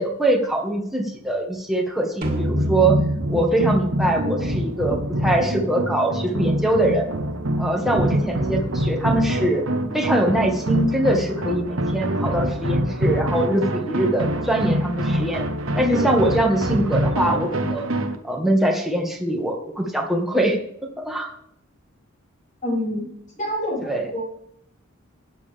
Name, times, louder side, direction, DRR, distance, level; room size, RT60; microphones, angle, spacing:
voice 1, 0.0-3.0 3.3-7.0 7.6-9.6 9.9-15.4 15.7-17.9 18.2-20.6 21.0-21.3 23.8-24.1, right 1 dB, ahead, 0 dB, 2.1 m, -22 dB
sound 1, 2.2-5.7, equal, 40° right, 2.4 m, -27 dB
sound 2, 2.5-18.2, right 1 dB, 70° right, 1.2 m, -25 dB
voice 2, 22.6-23.1 23.4-24.2, left 1 dB, 40° left, -4 dB, 5.3 m, -27 dB
13.5 x 9.3 x 3.6 m, 0.70 s
head